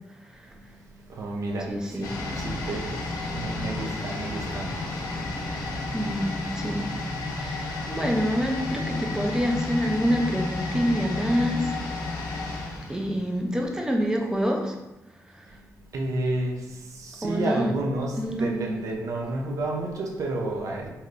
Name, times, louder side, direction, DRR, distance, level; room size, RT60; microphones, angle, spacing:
voice 1, 0.5-5.9 7.0-8.0 12.0-13.0 15.5-20.9, right 2 dB, 60° right, 0 dB, 0.6 m, -32 dB
voice 2, 1.7-2.2 5.9-6.9 7.4-11.8 12.9-14.8 15.3-15.5 17.2-17.7 18.2-18.7, equal, 10° right, 2 dB, 0.4 m, -27 dB
sound 1, 2.0-13.7 14.0-14.1, left 2 dB, 90° left, 0.5 m, -31 dB
3.3 x 2.7 x 2.5 m, 0.98 s
wide cardioid pair, 140°, 6 cm